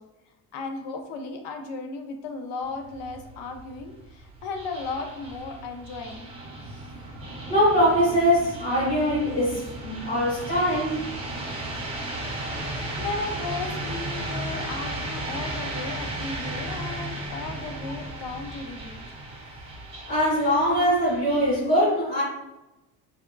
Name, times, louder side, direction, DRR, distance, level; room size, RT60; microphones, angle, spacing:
voice 1, 0.5-6.3 13.0-19.0, left 4 dB, 75° left, 5 dB, 0.6 m, -35 dB
sound 1, 2.6-21.6, right 1 dB, 15° right, 0.4 m, -35 dB
voice 2, 7.5-11.0 20.1-22.2, equal, 60° left, -9 dB, 1.4 m, -22 dB
3.5 x 2.1 x 2.3 m, 0.98 s
cardioid pair, 170°, 41 cm